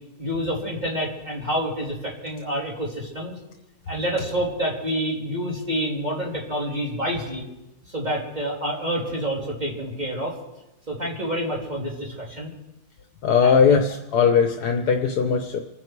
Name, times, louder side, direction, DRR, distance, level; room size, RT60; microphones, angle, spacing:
voice 1, 0.2-3.4 3.9-7.5 7.9-10.3 10.9-12.5 13.4-13.6, equal, 25° right, -3 dB, 3.7 m, -28 dB
voice 2, 13.2-15.6, left 6 dB, 75° left, 5 dB, 1.5 m, -19 dB
27.5 x 10.5 x 4.7 m, 0.96 s
omnidirectional pair, 1.7 m